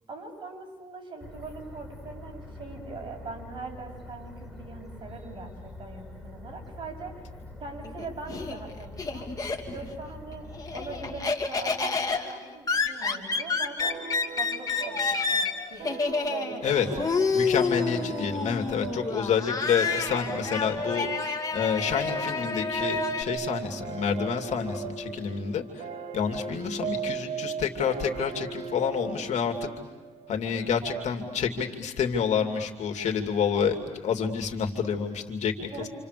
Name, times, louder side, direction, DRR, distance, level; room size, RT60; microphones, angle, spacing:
voice 1, 0.1-7.2 7.6-9.3 9.7-14.0 14.3-15.0 15.3-15.4 15.7-15.8 16.3-17.3 17.5-18.4 30.8-31.1 35.7-35.9, right 3 dB, 40° right, 1 dB, 7.9 m, -41 dB
sound 1, 1.2-11.3, left 2 dB, ahead, 4.9 m, -44 dB
Laughter, 7.8-10.0 10.3-23.2, left 4 dB, 30° left, 2.8 m, -29 dB
sound 2, 13.8-30.9, right 6 dB, 70° right, 3.3 m, -39 dB
voice 2, 17.3-25.8 26.1-29.7 30.3-35.9, left 6 dB, 70° left, 4 dB, 3.0 m, -28 dB
28.5 x 28.5 x 6.9 m, 1.2 s
cardioid pair, 105°, 12 cm